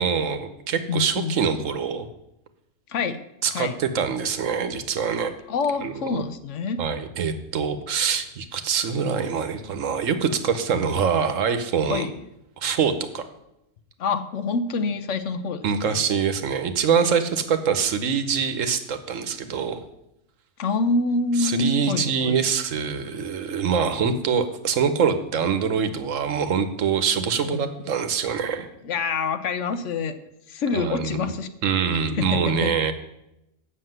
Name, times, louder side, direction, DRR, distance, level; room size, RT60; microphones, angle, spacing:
voice 1, 0.0-2.1 3.4-5.3 5.8-6.2 6.8-12.1 12.6-13.2 15.6-19.8 21.4-28.7 30.7-31.3 31.6-32.9, right 6 dB, 75° right, 9 dB, 1.2 m, -24 dB
voice 2, 0.9-1.6 2.9-3.2 3.5-3.8 5.5-6.8 11.9-12.1 14.0-16.0 20.6-22.4 27.5-27.6 28.8-30.1 30.5-31.5 32.2-32.7, left 4 dB, 65° left, 11 dB, 1.0 m, -26 dB
7.6 x 6.5 x 7.8 m, 0.85 s
omnidirectional pair, 1.4 m